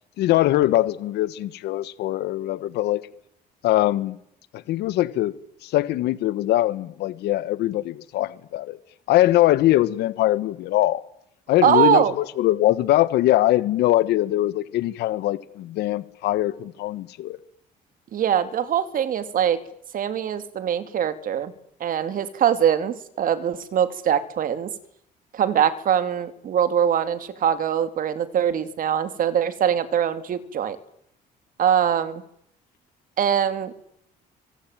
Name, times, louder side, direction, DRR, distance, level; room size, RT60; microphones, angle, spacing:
voice 1, 0.2-3.0 3.6-4.2 4.5-5.3 5.6-8.8 9.1-11.0 11.5-17.4, left 15 dB, 80° left, 1.4 m, -22 dB
voice 2, 11.6-12.1 18.1-19.6 19.9-21.5 21.8-24.7 25.3-30.8 31.6-32.2 33.2-33.8, right 9 dB, 55° right, 2.9 m, -22 dB
25.5 x 25.5 x 9.2 m
cardioid pair, 110°, 17 cm